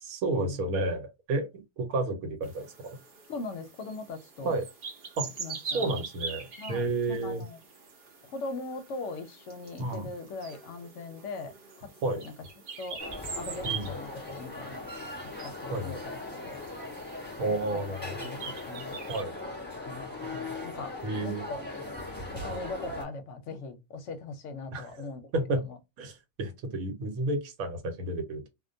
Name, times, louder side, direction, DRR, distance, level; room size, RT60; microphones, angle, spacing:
voice 1, 0.0-3.0 4.4-4.7 5.2-5.3 5.7-7.4 9.8-10.1 12.0-12.2 13.6-13.9 15.7-16.0 17.4-18.3 19.1-19.3 21.0-21.5 24.7-24.9 25.3-25.6 26.0-28.5, right 2 dB, 80° right, 1.2 m, -31 dB
sound 1, 2.4-19.2, right 5 dB, 50° right, 0.7 m, -43 dB
voice 2, 3.3-4.6 5.4-6.0 6.6-7.6 8.2-12.3 12.8-13.0 13.4-14.9 15.2-16.6 17.4-19.0 19.9-20.9 21.2-21.6 22.3-25.2 25.6-25.8, left 3 dB, 65° left, 0.8 m, -40 dB
sound 2, 13.0-23.0, left 2 dB, 10° left, 1.0 m, -39 dB
2.4 x 2.2 x 2.5 m
omnidirectional pair, 1.5 m